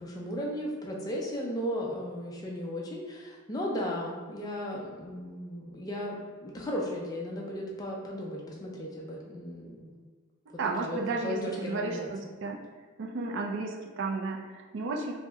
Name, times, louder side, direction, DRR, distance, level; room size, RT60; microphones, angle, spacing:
voice 1, 0.0-9.9 10.8-12.1, equal, 15° left, -3 dB, 0.4 m, -36 dB
voice 2, 10.6-12.6 13.0-15.2, right 3 dB, 55° right, 0 dB, 0.4 m, -33 dB
2.7 x 2.1 x 3.4 m, 1.4 s
head